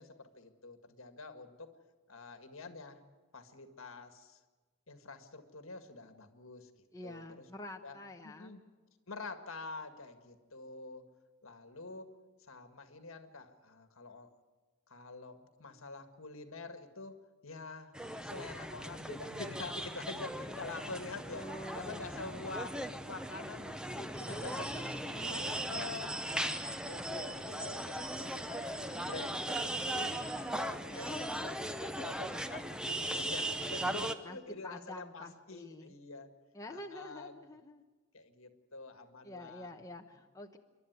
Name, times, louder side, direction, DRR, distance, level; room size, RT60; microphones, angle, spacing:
voice 1, 0.0-1.7 2.1-3.0 3.3-4.4 4.9-6.7 7.0-7.5 7.8-8.0 8.2-8.6 9.1-11.0 11.4-12.1 12.5-14.3 14.9-17.9 18.2-21.5 21.7-26.2 26.8-30.2 30.5-36.3 36.7-37.3 38.1-39.8, left 3 dB, 70° left, 8 dB, 1.8 m, -47 dB
voice 2, 6.9-8.5 21.3-22.1 24.3-24.7 25.1-25.9 30.7-31.4 34.2-34.4 34.6-35.9 36.5-37.8 39.2-40.6, left 2 dB, 15° left, 2 dB, 1.0 m, -47 dB
sound 1, 17.9-34.2, right 1 dB, 5° right, 0.7 m, -38 dB
27.5 x 12.0 x 9.4 m, 1.3 s
head